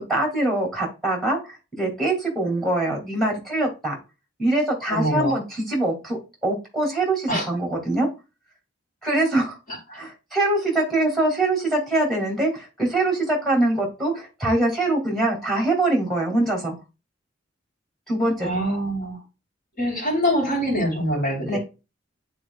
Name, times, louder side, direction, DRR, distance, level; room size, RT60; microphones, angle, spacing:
voice 1, 0.1-4.0 4.4-8.1 9.0-9.6 9.9-16.7 18.1-18.5 21.5-21.6, right 2 dB, ahead, 0 dB, 2.6 m, -23 dB
voice 2, 4.9-5.4 7.3-7.5 9.7-10.0 18.4-19.2 19.8-21.6, equal, 50° left, -2 dB, 3.4 m, -24 dB
9.7 x 4.2 x 2.3 m, 0.28 s
head